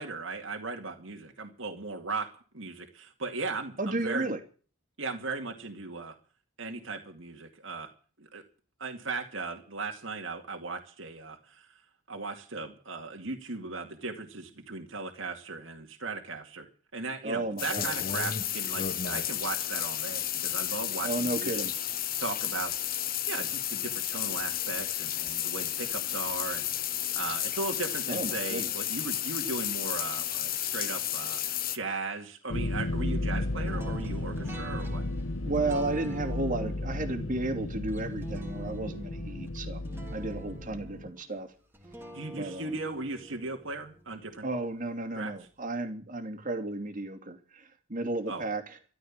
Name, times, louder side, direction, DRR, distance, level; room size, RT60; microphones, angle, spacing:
voice 1, 0.0-2.3 2.5-4.3 5.0-6.1 6.6-7.9 8.2-8.4 8.8-11.8 12.1-21.7 22.2-23.0 23.3-35.0 42.1-44.5 45.1-45.3 48.3-48.5, right 3 dB, 60° right, 3 dB, 2.4 m, -37 dB
voice 2, 3.8-4.4 17.2-17.9 21.0-21.7 28.1-28.7 35.4-39.8 40.1-41.5 42.3-42.8 44.4-48.8, right 2 dB, 40° right, 6 dB, 2.7 m, -33 dB
sound 1, 17.6-31.8, left 11 dB, 45° left, 1.2 m, -32 dB
sound 2, 32.5-41.1, left 2 dB, 60° left, 1.0 m, -34 dB
sound 3, 33.7-44.7, right 2 dB, 10° right, 2.9 m, -47 dB
14.0 x 12.5 x 7.5 m, 0.39 s
head